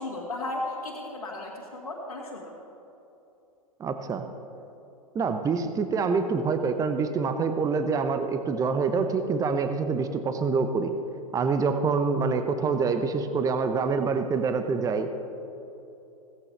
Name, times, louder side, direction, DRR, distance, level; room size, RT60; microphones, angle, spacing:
voice 1, 0.0-2.5, left 2 dB, 80° left, -4 dB, 1.8 m, -35 dB
voice 2, 3.8-4.3 5.1-10.9 11.3-15.1, right 5 dB, 20° right, 8 dB, 0.8 m, -26 dB
16.5 x 15.0 x 3.3 m, 2.9 s
figure-of-eight pair, 100°, 18 cm